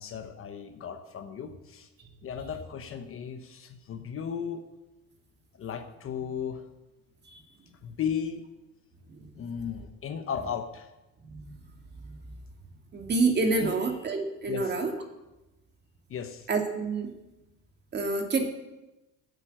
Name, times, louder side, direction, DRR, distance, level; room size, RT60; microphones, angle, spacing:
voice 1, 0.0-1.9 2.2-4.7 5.5-6.7 7.8-8.4 9.4-10.9 13.6-13.8 14.5-14.7 16.1-16.5, left 7 dB, 35° left, 8 dB, 1.1 m, -35 dB
voice 2, 12.9-14.9 16.5-17.1 17.9-18.4, right 3 dB, 30° right, 4 dB, 2.1 m, -27 dB
14.5 x 8.3 x 8.9 m, 1.0 s
cardioid pair, 160°, 36 cm